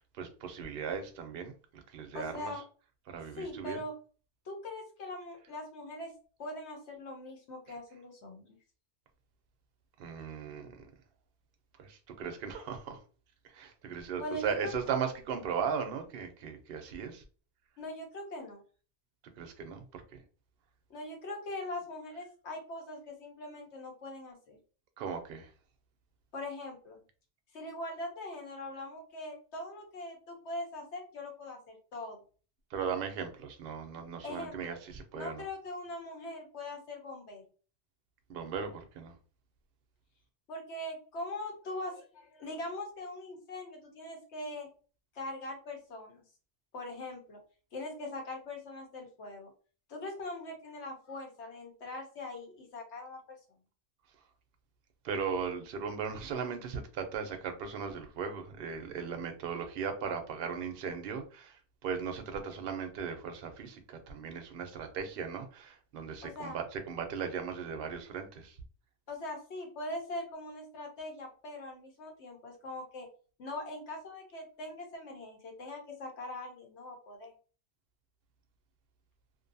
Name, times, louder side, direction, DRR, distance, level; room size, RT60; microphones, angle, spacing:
voice 1, 0.0-2.6 3.1-3.8 10.0-10.9 11.8-13.0 13.4-17.2 19.4-20.2 25.0-25.5 32.7-35.4 38.3-39.2 55.0-68.6, right 6 dB, 60° right, 0.7 m, -37 dB
voice 2, 2.1-2.6 3.4-3.9 4.4-6.1 6.4-8.5 14.2-14.7 17.8-18.6 20.9-24.6 26.3-27.0 27.5-32.2 34.2-34.8 35.1-37.4 40.5-44.7 45.1-46.2 46.7-47.4 47.7-49.5 49.9-53.2 66.2-66.6 69.1-73.1 73.4-77.3, left 1 dB, 70° left, 1.1 m, -41 dB
2.6 x 2.2 x 2.6 m
omnidirectional pair, 1.2 m